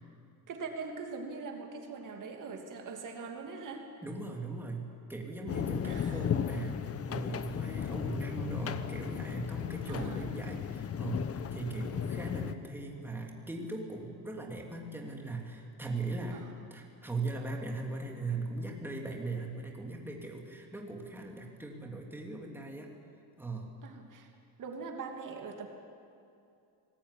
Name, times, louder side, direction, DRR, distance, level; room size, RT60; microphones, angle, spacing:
voice 1, 0.5-3.9 5.8-6.4 9.9-10.3 11.9-12.0 16.3-16.7 23.8-24.3 24.6-25.7, right 4 dB, 50° right, 3 dB, 2.8 m, -42 dB
voice 2, 4.0-16.4 16.7-22.9 23.4-23.7, right 2 dB, 5° right, 0 dB, 3.0 m, -39 dB
sound 1, 5.5-12.5, left 8 dB, 35° left, 1.0 m, -35 dB
25.5 x 19.0 x 10.0 m, 2.5 s
cardioid pair, 150°, 39 cm